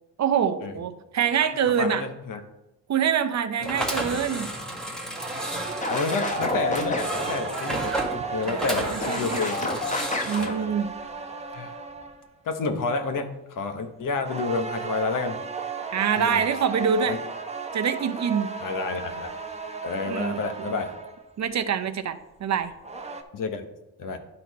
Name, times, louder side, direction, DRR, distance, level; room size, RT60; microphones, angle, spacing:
voice 1, 0.2-2.1 2.9-4.5 8.5-9.5 10.3-10.9 15.9-17.2 17.7-18.5 20.1-20.7 21.4-22.7, right 7 dB, 50° right, 9 dB, 0.7 m, -25 dB
voice 2, 1.8-2.4 4.1-4.2 5.9-8.0 8.3-9.6 10.3-10.7 11.5-11.7 12.4-15.4 16.2-16.4 17.1-17.2 18.6-19.3 19.8-20.9 23.3-23.6 24.0-24.2, left 4 dB, 60° left, 7 dB, 1.1 m, -29 dB
sound 1, 3.6-10.5, right 1 dB, ahead, 1.4 m, -32 dB
sound 2, 5.1-12.3 14.2-21.3 22.6-23.2, right 5 dB, 20° right, 0.9 m, -35 dB
sound 3, 5.8-7.4 7.8-10.6, left 3 dB, 20° left, 1.0 m, -31 dB
10.5 x 4.3 x 4.1 m, 0.94 s
cardioid pair, 70°, 36 cm